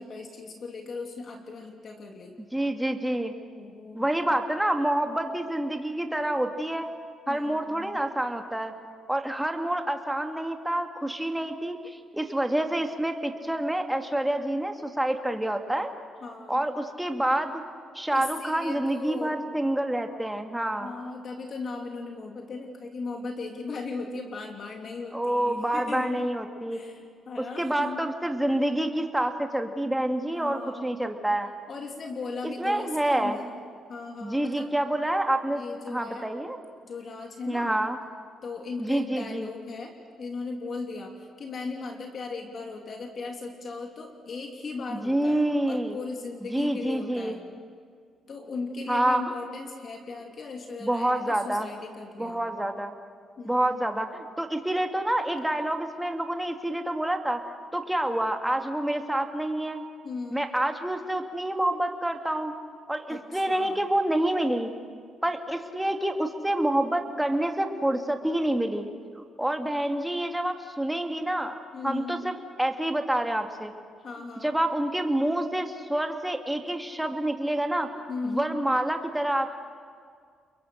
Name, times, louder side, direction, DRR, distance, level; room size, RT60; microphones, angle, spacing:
voice 1, 0.0-2.4 3.6-4.1 7.3-8.0 16.2-16.7 18.1-19.4 20.8-26.2 26.7-28.0 30.3-30.9 31.7-33.6 33.9-34.7 35.5-36.3 36.8-37.7 38.4-47.4 48.3-52.4 53.4-53.8 60.0-60.5 63.1-63.9 71.7-72.2 74.0-74.5 78.1-78.4, left 3 dB, 50° left, 2 dB, 3.1 m, -37 dB
voice 2, 2.5-3.3 3.9-6.9 7.3-8.7 9.1-15.9 16.5-17.6 17.9-20.9 25.1-26.8 27.4-31.5 32.4-33.4 34.2-35.6 35.9-36.6 37.5-38.0 38.8-39.5 44.9-46.0 46.4-47.4 48.9-49.2 50.8-51.7 52.2-52.9 53.4-57.4 57.7-59.9 60.3-62.5 62.9-64.7 65.2-68.9 69.1-71.6 71.8-73.7 74.4-77.9 78.2-79.5, right 1 dB, 5° right, 4 dB, 2.3 m, -27 dB
30.0 x 22.5 x 6.5 m, 2.1 s
cardioid pair, 90°, 0 cm